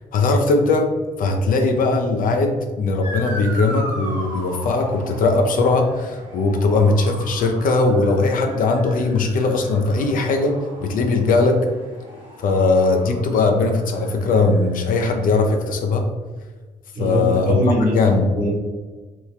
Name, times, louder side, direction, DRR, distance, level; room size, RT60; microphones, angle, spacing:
voice 1, 0.1-0.9 1.2-10.5 10.8-11.7 12.4-16.0 17.0-17.6 17.9-18.3, left 3 dB, 55° left, 4 dB, 0.5 m, -19 dB
Motor vehicle (road) / Siren, 3.0-15.6, right 1 dB, 85° right, 1.1 m, -38 dB
voice 2, 16.9-18.0 18.4-18.5, right 1 dB, 60° right, -4 dB, 1.3 m, -21 dB
3.0 x 2.3 x 3.2 m, 1.3 s
hypercardioid pair, 50°, 17 cm